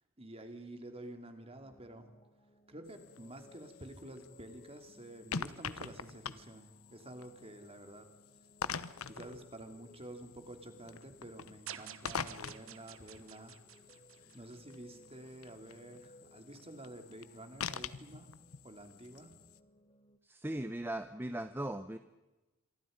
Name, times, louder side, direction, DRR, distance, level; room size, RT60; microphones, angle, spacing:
voice 1, 0.2-2.1 2.7-8.1 9.0-13.6 14.3-18.3 18.6-19.4, right 1 dB, 30° right, 6 dB, 2.9 m, -50 dB
sound 1, 1.6-20.2, left 1 dB, 25° left, 1.5 m, -63 dB
sound 2, 2.9-19.6, left 6 dB, 85° left, 1.0 m, -46 dB
sound 3, 11.7-15.0, right 10 dB, 70° right, 1.3 m, -50 dB
voice 2, 20.2-22.0, right 1 dB, 10° right, 10 dB, 0.8 m, -38 dB
27.5 x 23.5 x 5.3 m, 1.1 s
head